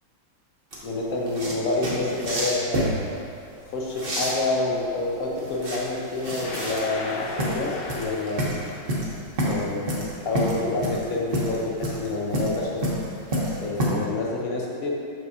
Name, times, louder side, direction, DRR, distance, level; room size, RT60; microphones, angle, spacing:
sound 1, 0.7-13.9, equal, 35° right, 1.0 m, -29 dB
voice 1, 0.8-2.8 3.7-8.5 9.4-12.9 13.6-14.9, left 2 dB, 55° left, -2 dB, 1.1 m, -28 dB
sound 2, 6.4-9.0, left 2 dB, 75° left, 1.2 m, -35 dB
6.2 x 6.1 x 2.8 m, 2.3 s
omnidirectional pair, 2.0 m